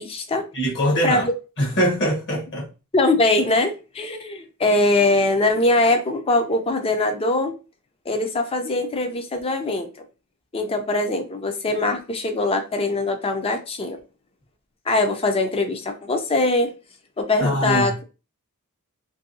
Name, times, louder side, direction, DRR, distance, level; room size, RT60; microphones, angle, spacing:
voice 1, 0.0-0.5 1.0-1.3 2.9-7.5 8.1-9.9 10.5-14.0 14.9-16.7 17.2-18.0, left 2 dB, 25° left, 0.5 m, -22 dB
voice 2, 0.5-1.3 1.6-2.6 17.4-17.9, equal, 55° left, 1.1 m, -22 dB
2.7 x 2.7 x 2.6 m
head